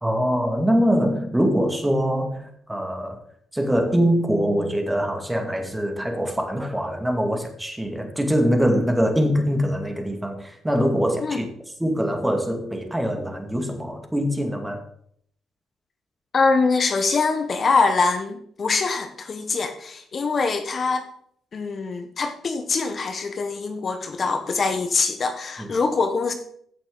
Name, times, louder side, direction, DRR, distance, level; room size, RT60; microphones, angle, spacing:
voice 1, 0.0-3.2 3.5-11.5 11.8-14.8 25.6-25.7, equal, 10° right, 2.1 m, -23 dB
voice 2, 16.3-21.1 21.5-26.3, left 4 dB, 45° left, 1.1 m, -23 dB
15.0 x 6.7 x 3.9 m
cardioid pair, 90°, 0 cm